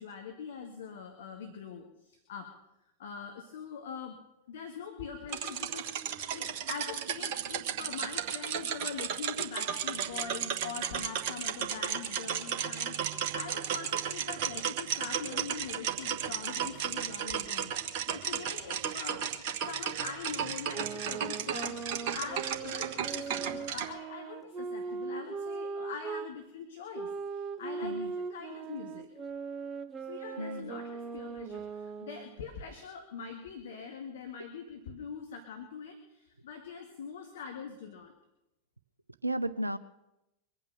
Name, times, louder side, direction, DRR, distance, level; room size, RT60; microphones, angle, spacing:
voice 1, 0.0-2.5 3.0-4.2 4.5-5.9 6.3-19.2 19.6-29.1 30.1-38.1, left 6 dB, 60° left, 4 dB, 1.9 m, -43 dB
sound 1, 5.3-23.9, right 8 dB, 45° right, 1.5 m, -34 dB
sound 2, 20.7-26.3 26.9-32.4, right 5 dB, 25° right, 1.1 m, -39 dB
voice 2, 30.4-30.7 39.2-39.8, right 1 dB, 85° right, 12 dB, 0.6 m, -33 dB
23.5 x 8.9 x 6.7 m, 0.91 s
figure-of-eight pair, 90°, 0 cm